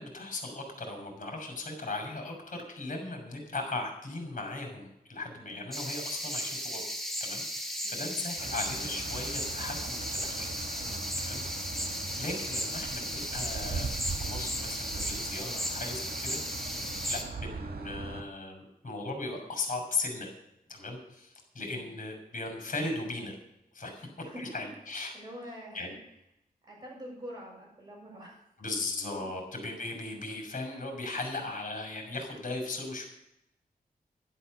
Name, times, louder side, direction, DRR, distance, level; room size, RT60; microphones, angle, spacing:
voice 1, 0.0-6.8 7.2-10.5 11.2-11.4 11.8-20.3 20.7-23.4 23.7-24.1 24.3-25.1 25.7-25.9 28.6-33.1, left 2 dB, 55° left, 3 dB, 6.1 m, -38 dB
sound 1, 5.7-17.2, equal, ahead, 2.2 m, -35 dB
sound 2, 8.4-18.2, right 4 dB, 85° right, 1.7 m, -40 dB
voice 2, 21.6-21.9 24.2-24.5 25.1-25.8 26.6-28.4 29.8-29.9, equal, 25° right, -3 dB, 7.3 m, -46 dB
12.0 x 11.5 x 6.7 m, 0.83 s
wide cardioid pair, 115°, 16 cm